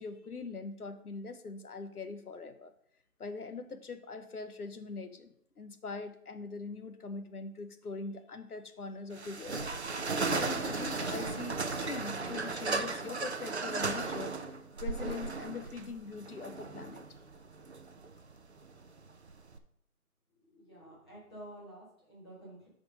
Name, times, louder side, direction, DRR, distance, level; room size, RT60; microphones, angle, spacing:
voice 1, 0.0-2.7 3.2-9.7 10.3-14.4 14.8-17.0, left 4 dB, 75° left, 9 dB, 1.1 m, -42 dB
sound 1, 9.1-19.6, right 3 dB, 50° right, 0.6 m, -36 dB
voice 2, 20.5-22.7, right 1 dB, 15° left, -6 dB, 2.2 m, -50 dB
7.7 x 5.1 x 5.0 m, 0.69 s
figure-of-eight pair, 170°, 45 cm